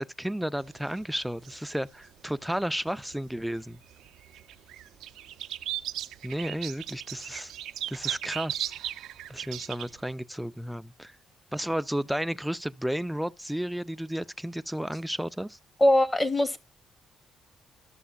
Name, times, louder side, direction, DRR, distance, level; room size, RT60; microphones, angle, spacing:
voice 1, 0.0-3.8 6.2-7.5 7.9-8.7 9.3-11.2 11.5-15.6, equal, 5° right, 0.3 m, -32 dB
sound 1, 0.6-3.1 3.5-10.0, right 12 dB, 85° right, 0.4 m, -37 dB
voice 2, 15.8-16.6, left 1 dB, 15° left, 0.8 m, -21 dB
12.5 x 6.4 x 2.4 m
cardioid pair, 90°, 0 cm